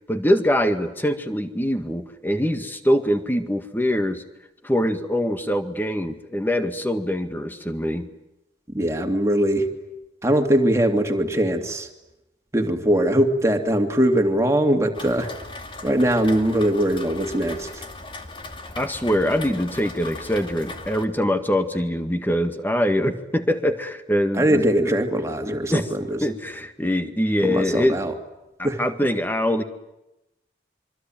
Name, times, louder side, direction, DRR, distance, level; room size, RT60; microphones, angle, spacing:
voice 1, 0.1-4.2 4.6-8.1 18.8-24.9 25.5-25.9 26.2-28.0 28.6-29.6, equal, 10° left, 8 dB, 1.9 m, -23 dB
voice 2, 8.7-9.7 10.2-11.9 12.5-15.3 15.8-17.8 24.3-26.2 27.4-28.1 28.6-28.8, right 1 dB, 15° right, 3 dB, 2.8 m, -21 dB
Rain, 14.9-21.0, left 2 dB, 30° left, 2.5 m, -38 dB
26.0 x 24.5 x 9.1 m, 0.93 s
head